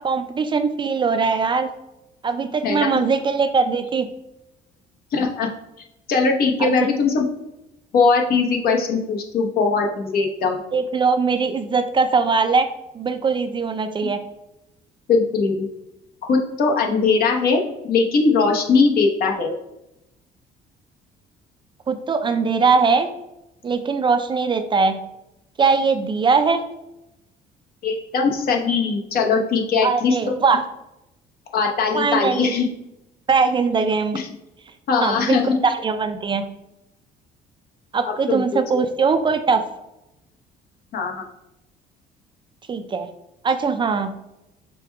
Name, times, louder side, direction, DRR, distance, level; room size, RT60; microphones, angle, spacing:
voice 1, 0.0-1.7 2.2-4.1 6.6-6.7 10.7-12.7 12.9-14.2 21.9-23.1 23.6-25.0 25.6-26.6 29.8-30.6 31.9-32.5 33.3-34.2 35.0-36.4 37.9-39.6 42.7-43.1 43.4-44.1, right 5 dB, 30° right, 8 dB, 0.4 m, -20 dB
voice 2, 2.6-3.0 5.1-5.5 6.1-7.3 7.9-10.6 15.1-15.7 16.3-19.5 27.8-30.4 31.5-32.7 34.1-34.3 34.9-35.6 38.0-38.4 40.9-41.2, left 4 dB, 65° left, 2 dB, 1.0 m, -20 dB
5.0 x 2.2 x 4.6 m, 0.89 s
cardioid pair, 110°, 17 cm